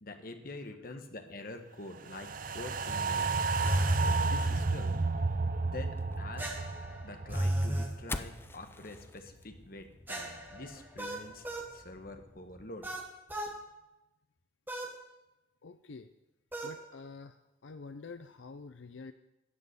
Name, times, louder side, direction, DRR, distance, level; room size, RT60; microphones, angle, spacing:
voice 1, 0.0-3.4 4.2-5.1 5.6-6.6 7.0-11.5 11.7-12.9, left 2 dB, 50° left, 6 dB, 1.2 m, -46 dB
sound 1, 2.1-8.5 8.8-8.9, right 3 dB, 45° right, 0.5 m, -32 dB
sound 2, 3.6-4.2 6.4-7.9 10.1-11.7 12.8-13.6 14.7-15.0 16.5-16.8, right 1 dB, 10° right, 1.3 m, -34 dB
sound 3, 6.0-12.7, left 2 dB, 10° left, 0.3 m, -48 dB
voice 2, 15.6-16.1 16.6-19.1, left 4 dB, 75° left, 9 dB, 0.5 m, -48 dB
13.0 x 5.4 x 9.3 m, 0.99 s
head